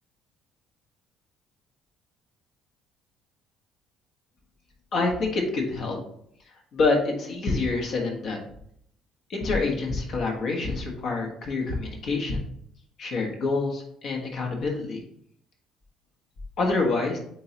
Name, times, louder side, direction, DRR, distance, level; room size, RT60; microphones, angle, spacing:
voice 1, 4.9-6.0 6.7-8.4 9.3-12.4 13.0-15.0 16.6-17.2, left 3 dB, 50° left, 1 dB, 1.5 m, -26 dB
8.5 x 3.9 x 2.9 m, 0.69 s
figure-of-eight pair, 50°, 0 cm